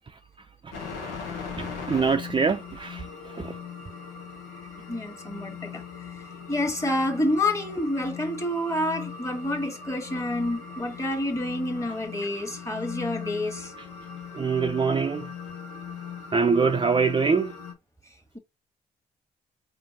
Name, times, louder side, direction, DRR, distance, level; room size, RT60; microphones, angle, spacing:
sound 1, 0.7-17.7, left 6 dB, 85° left, 1.0 m, -39 dB
voice 1, 1.6-3.6 14.3-15.3 16.3-17.5, right 5 dB, 25° right, 0.5 m, -24 dB
voice 2, 4.9-5.8 6.5-13.7, left 1 dB, 15° left, 1.5 m, -28 dB
4.5 x 2.6 x 3.6 m
hypercardioid pair, 45°, 19 cm